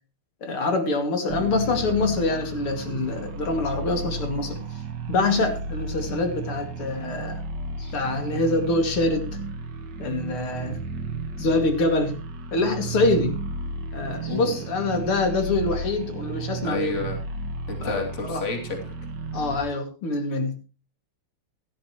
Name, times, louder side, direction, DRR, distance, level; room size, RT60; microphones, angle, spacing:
voice 1, 0.4-4.6 5.1-7.4 7.8-9.3 10.0-10.8 11.4-12.2 12.5-13.3 13.9-16.9 17.8-18.0 18.3-18.4 19.3-20.6, left 2 dB, 85° left, 5 dB, 3.2 m, -25 dB
sound 1, 1.3-19.6, right 3 dB, 55° right, 1.8 m, -33 dB
voice 2, 14.3-14.6 16.6-17.2 17.7-18.9, left 3 dB, 35° left, 2 dB, 3.0 m, -31 dB
16.5 x 12.5 x 3.0 m, 0.32 s
omnidirectional pair, 2.3 m